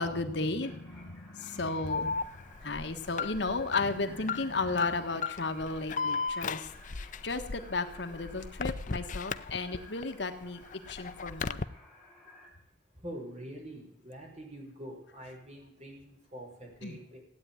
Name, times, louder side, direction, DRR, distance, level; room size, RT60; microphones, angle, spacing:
voice 1, 0.0-2.1 2.6-6.7 7.0-10.6 10.9-11.6 16.8-17.0, left 3 dB, 70° left, 8 dB, 1.4 m, -34 dB
sound 1, 0.6-12.5, left 2 dB, ahead, 6.1 m, -55 dB
voice 2, 1.6-1.9 2.9-3.0 13.0-17.2, equal, 40° right, 0 dB, 5.9 m, -45 dB
Alarm, 1.9-10.0 10.4-11.6, left 4 dB, 45° left, 0.6 m, -36 dB
16.5 x 9.3 x 9.3 m, 0.77 s
head